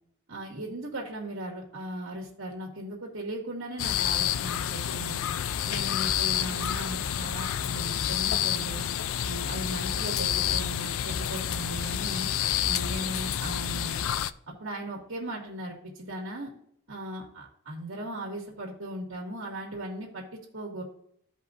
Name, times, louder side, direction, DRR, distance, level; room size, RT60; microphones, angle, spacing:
voice 1, 0.3-5.2 5.7-8.9 9.2-12.3 12.6-14.0 14.5-16.5 16.9-20.8, right 1 dB, 70° right, -2 dB, 2.1 m, -37 dB
sound 1, 3.8-14.3, left 10 dB, 75° left, 0.4 m, -29 dB
15.5 x 5.3 x 2.5 m, 0.69 s
head